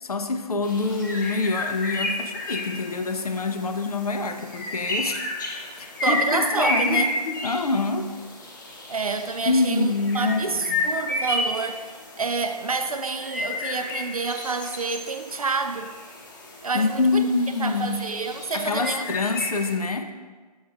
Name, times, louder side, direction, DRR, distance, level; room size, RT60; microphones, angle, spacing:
voice 1, 0.0-5.4 5.8-8.1 9.5-10.8 16.7-18.1 18.5-20.1, left 3 dB, 65° left, 7 dB, 0.6 m, -26 dB
sound 1, 0.6-19.8, left 2 dB, 30° left, 0.8 m, -32 dB
voice 2, 6.0-7.1 8.9-15.9 16.6-17.2 17.6-19.0, right 4 dB, 60° right, 8 dB, 0.4 m, -28 dB
7.1 x 5.9 x 2.5 m, 1.4 s
figure-of-eight pair, 145°, 21 cm